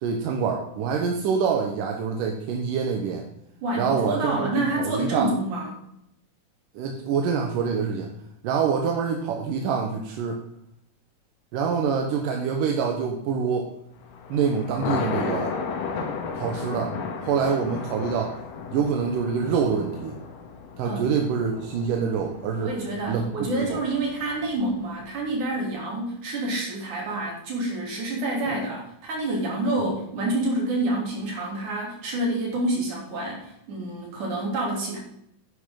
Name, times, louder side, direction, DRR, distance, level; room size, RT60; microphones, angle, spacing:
voice 1, 0.0-3.3 3.8-4.5 4.8-5.3 6.8-8.1 8.4-10.4 11.5-13.7 14.3-15.5 16.4-16.9 17.2-18.4 18.7-20.2 20.8-22.7 23.1-23.2 23.5-23.8 28.5-28.6 29.8-29.9, right 6 dB, 90° right, 2 dB, 2.7 m, -26 dB
voice 2, 3.6-5.7 20.8-21.1 22.6-35.0, right 1 dB, 65° right, -2 dB, 4.5 m, -28 dB
Thunder, 14.0-25.3, left 5 dB, 85° left, 3.0 m, -35 dB
10.0 x 9.9 x 3.8 m, 0.75 s
omnidirectional pair, 3.7 m